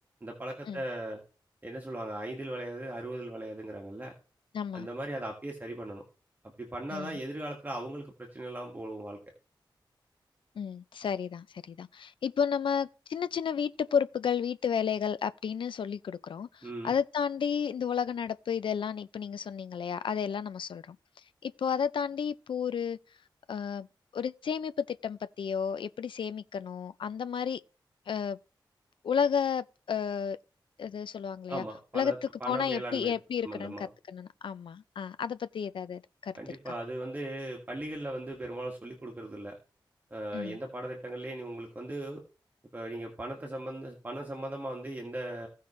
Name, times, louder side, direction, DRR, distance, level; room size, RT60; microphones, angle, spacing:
voice 1, 0.2-1.2 1.6-4.1 4.7-6.0 6.6-9.2 16.6-16.9 31.5-33.1 33.4-33.9 36.4-39.6 40.1-42.2 42.7-45.5, right 1 dB, 20° right, 1.8 m, -38 dB
voice 2, 4.5-4.9 6.9-7.2 10.6-21.0 21.4-23.0 23.5-23.9 24.1-27.6 28.1-28.4 29.0-30.4 30.8-31.6 31.9-36.3 40.3-40.6, left 7 dB, 85° left, 0.5 m, -32 dB
16.5 x 5.5 x 3.2 m
wide cardioid pair, 120°, 8 cm